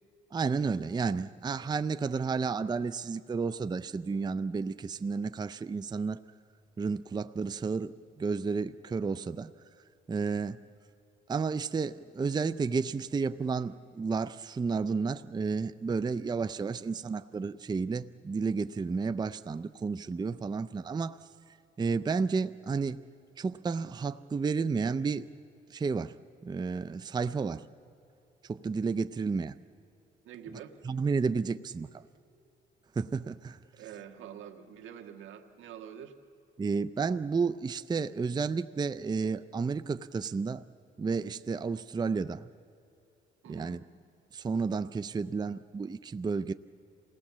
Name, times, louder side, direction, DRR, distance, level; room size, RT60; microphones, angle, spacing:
voice 1, 0.3-6.2 6.8-9.5 10.1-10.6 11.3-21.2 21.8-23.0 23.4-25.3 25.7-26.1 26.4-27.6 28.4-29.5 30.8-32.0 33.0-33.6 36.6-40.6 41.0-42.5 43.5-43.8 44.3-46.5, right 5 dB, 20° right, 11 dB, 0.5 m, -31 dB
voice 2, 30.2-30.7 33.8-36.1 43.4-43.8, right 9 dB, 85° right, 3 dB, 1.6 m, -46 dB
28.0 x 18.0 x 7.4 m, 2.7 s
cardioid pair, 90°, 20 cm